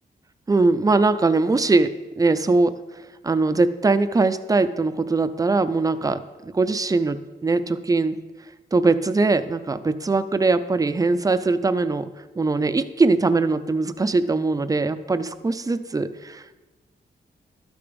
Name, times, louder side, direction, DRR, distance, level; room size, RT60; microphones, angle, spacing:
voice 1, 0.5-2.8 3.2-6.2 6.5-8.2 8.7-12.1 12.4-16.6, right 3 dB, 20° right, 12 dB, 0.5 m, -21 dB
12.0 x 6.8 x 5.2 m, 1.2 s
wide cardioid pair, 130°, 19 cm